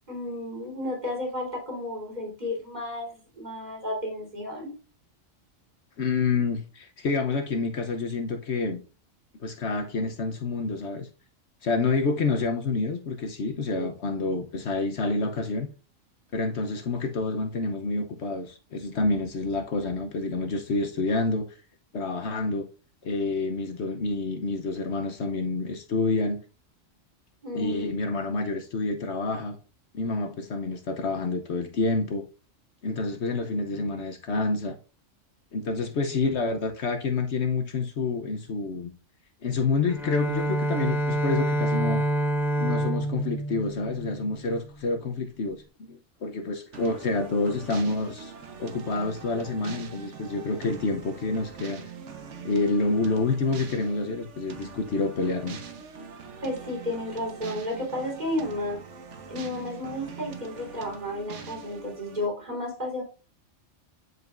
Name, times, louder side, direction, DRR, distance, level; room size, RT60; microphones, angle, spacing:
voice 1, 0.1-4.8 13.8-13.9 27.4-27.9 56.4-58.8 59.3-63.0, left 1 dB, 35° right, 3.9 m, -32 dB
voice 2, 6.0-8.8 9.4-11.1 11.6-15.7 16.3-21.5 21.9-22.7 23.0-26.4 27.5-29.6 29.9-32.3 32.8-34.8 35.5-38.9 39.4-42.0 42.6-45.6 45.9-48.3 48.6-51.8 52.4-55.6, left 3 dB, 65° left, 1.1 m, -28 dB
Bowed string instrument, 39.9-44.8, right 1 dB, ahead, 0.7 m, -27 dB
sound 1, 46.7-62.3, right 5 dB, 70° right, 1.3 m, -43 dB
9.5 x 5.1 x 2.5 m
omnidirectional pair, 1.3 m